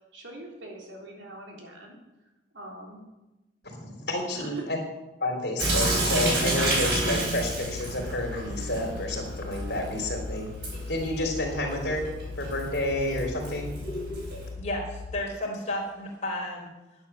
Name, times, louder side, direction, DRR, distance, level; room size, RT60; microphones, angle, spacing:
voice 1, 0.1-2.0 2.5-3.0 4.3-4.6, right 1 dB, 80° right, 0 dB, 3.5 m, -43 dB
voice 2, 3.6-4.8 5.2-10.5 10.9-12.0 12.4-13.7, left 1 dB, 60° left, 1 dB, 3.8 m, -30 dB
Sink (filling or washing) / Drip, 5.6-14.5, right 2 dB, 60° right, 4.6 m, -30 dB
sound 1, 6.4-15.2, left 4 dB, 80° left, 0.6 m, -40 dB
voice 3, 14.6-16.7, left 1 dB, 35° left, -1 dB, 3.9 m, -32 dB
12.0 x 9.6 x 7.1 m, 1.0 s
head